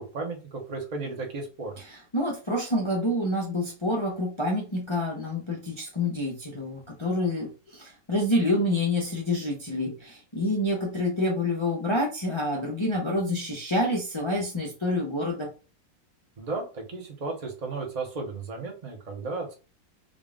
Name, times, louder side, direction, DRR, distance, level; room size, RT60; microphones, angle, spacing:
voice 1, 0.0-1.8 16.4-19.5, right 3 dB, 35° right, 2 dB, 0.6 m, -34 dB
voice 2, 2.1-15.5, left 1 dB, 35° left, -2 dB, 0.4 m, -27 dB
3.8 x 2.4 x 3.5 m, 0.33 s
omnidirectional pair, 2.0 m